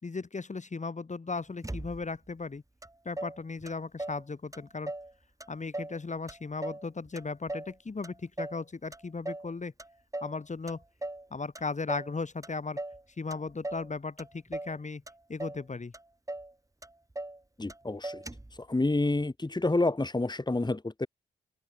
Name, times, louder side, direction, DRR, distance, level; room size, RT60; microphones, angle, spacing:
voice 1, 0.0-2.6 3.0-4.9 5.5-9.7 10.2-10.8 11.3-12.8 13.2-15.0 15.3-15.9, left 4 dB, 40° left, 3.5 m, -36 dB
Motor vehicle (road), 1.6-2.3 2.8-2.9 3.2-4.2 4.5-5.1 5.4-6.0 6.3-7.8 8.0-8.6 8.9-9.5 9.8-10.4 10.7-11.3 11.6-12.1 12.4-13.0 13.3-13.9 14.2-14.8 15.1-15.6 15.9-16.0 16.3-16.5 16.8-17.4 17.7-17.8 18.0-18.6, right 2 dB, 15° right, 5.5 m, -39 dB
voice 2, 17.6-18.2 18.6-21.1, left 2 dB, 25° left, 3.1 m, -28 dB
open air
cardioid pair, 55°, 19 cm